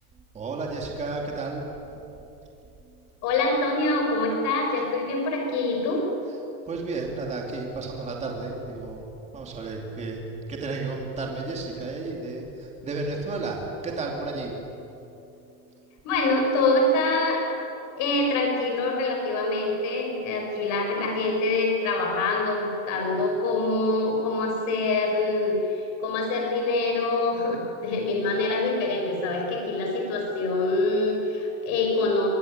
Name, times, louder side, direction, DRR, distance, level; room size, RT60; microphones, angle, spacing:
voice 1, 0.3-1.7 6.3-6.4 6.7-9.0 9.3-10.2 10.5-14.5, right 3 dB, 15° right, 0 dB, 2.7 m, -32 dB
voice 2, 3.2-6.0 16.0-17.4 18.0-32.3, left 2 dB, 35° left, 1 dB, 6.0 m, -25 dB
24.0 x 17.5 x 8.9 m, 2.9 s
supercardioid pair, 170°, 46 cm